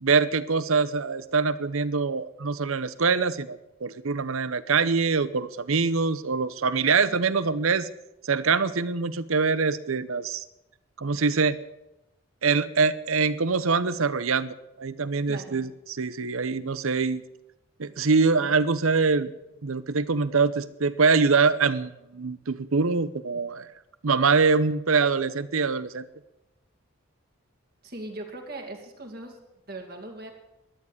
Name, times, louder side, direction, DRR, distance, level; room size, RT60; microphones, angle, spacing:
voice 1, 0.0-7.9 8.2-10.4 11.0-11.6 12.4-17.2 17.8-19.3 19.6-23.7 24.0-26.1, right 4 dB, 80° right, 16 dB, 0.8 m, -24 dB
voice 2, 15.3-15.6 27.8-30.3, right 2 dB, 45° right, 3 dB, 2.3 m, -39 dB
13.5 x 9.9 x 9.4 m, 0.93 s
head